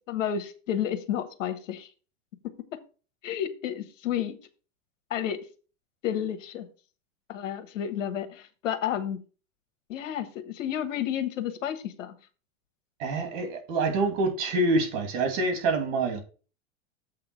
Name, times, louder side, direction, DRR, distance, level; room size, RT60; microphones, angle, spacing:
voice 1, 0.1-1.9 3.2-4.4 5.1-5.4 6.0-6.7 7.3-9.2 9.9-12.1, left 9 dB, 90° left, 1.4 m, -31 dB
voice 2, 13.0-16.2, right 2 dB, 55° right, 2.7 m, -26 dB
7.7 x 3.8 x 6.0 m
supercardioid pair, 130°, 37 cm